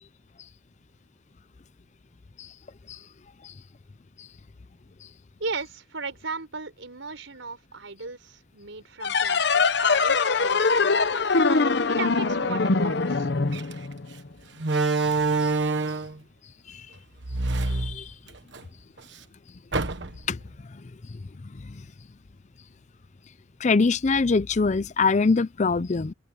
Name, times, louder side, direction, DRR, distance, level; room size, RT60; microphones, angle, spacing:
voice 1, 5.4-11.3 11.9-13.3, right 4 dB, 90° right, 4.8 m, -36 dB
sound 1, 9.0-14.3, left 4 dB, 60° left, 0.9 m, -23 dB
Slam, 13.5-13.7 14.6-16.2 17.2-18.6 19.0-19.1 19.7-20.3, right 3 dB, 65° right, 1.3 m, -26 dB
voice 2, 17.7-18.1 20.3-20.4 21.1-21.2 21.6-21.8 23.6-26.1, left 4 dB, 40° left, 0.5 m, -23 dB
open air
head